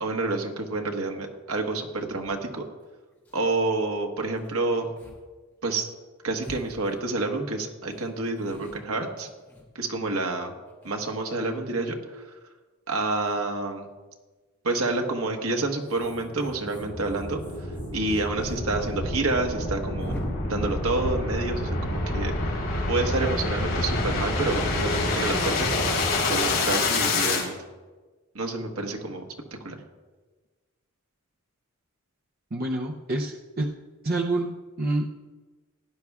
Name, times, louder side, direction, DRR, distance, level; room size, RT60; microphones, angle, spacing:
voice 1, 0.0-2.7 3.3-4.9 5.6-5.9 6.2-9.3 9.7-10.5 10.8-12.2 12.9-13.9 14.6-17.4 17.9-20.2 20.5-22.6 22.9-25.9 26.3-27.5 28.3-29.2 29.6-29.8, right 2 dB, 75° right, 3 dB, 1.3 m, -28 dB
sound 1, 2.2-2.3 2.8-2.9 3.1-3.5 4.4-4.5 5.0-5.2 5.5-5.6 6.4-7.4 7.9-10.1 10.7-11.4 13.1-13.4 14.7-15.0 15.8-18.6 18.8-18.9 19.2-19.3 20.0-20.2, equal, 10° left, 3.3 m, -45 dB
sound 2, 16.0-27.4, left 2 dB, 60° left, 3.2 m, -27 dB
voice 2, 32.5-33.7 34.0-35.0, right 2 dB, 40° right, 1 dB, 0.6 m, -27 dB
17.0 x 10.5 x 2.4 m, 1.3 s
head